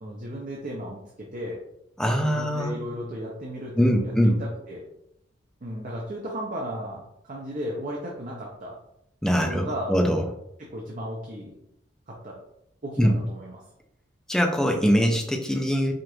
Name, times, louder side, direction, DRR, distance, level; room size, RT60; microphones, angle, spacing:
voice 1, 0.0-1.6 2.2-4.8 5.6-8.8 9.3-10.0 10.6-11.5 12.1-12.4 12.8-13.6, equal, 45° right, -2 dB, 0.7 m, -35 dB
voice 2, 2.0-2.8 3.8-4.4 9.2-10.2 13.0-13.1 14.3-16.0, equal, 5° left, 3 dB, 0.5 m, -22 dB
5.0 x 2.5 x 3.0 m, 0.77 s
head